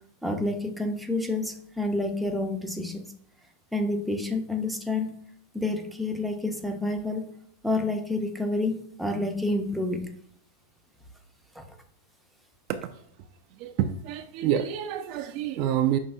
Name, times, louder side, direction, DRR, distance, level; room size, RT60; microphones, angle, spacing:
voice 1, 0.2-3.1 3.7-5.1 5.5-7.3 7.6-10.1 11.5-11.7, left 2 dB, ahead, 3 dB, 0.6 m, -29 dB
voice 2, 13.6-16.0, right 10 dB, 50° right, 8 dB, 0.3 m, -27 dB
5.5 x 3.1 x 2.6 m, 0.68 s
hypercardioid pair, 110°, 0 cm